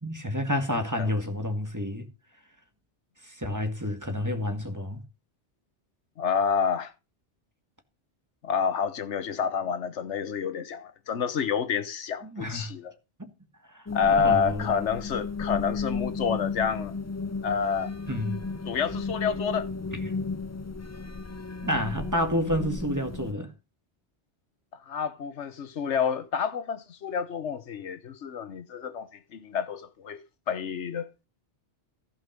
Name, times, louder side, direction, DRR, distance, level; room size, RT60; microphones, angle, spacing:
voice 1, 0.0-2.1 3.2-5.0 12.2-12.7 13.2-13.3 13.7-14.7 18.1-18.4 19.9-20.2 21.6-23.5, left 1 dB, 15° right, 1.7 m, -30 dB
voice 2, 6.2-6.9 8.4-12.9 13.9-16.9 17.4-17.9 18.7-19.7 24.9-30.2 30.5-31.1, left 6 dB, 85° left, 1.3 m, -28 dB
sound 1, 13.9-23.3, left 4 dB, 25° left, 0.4 m, -34 dB
15.0 x 5.7 x 5.1 m
omnidirectional pair, 1.2 m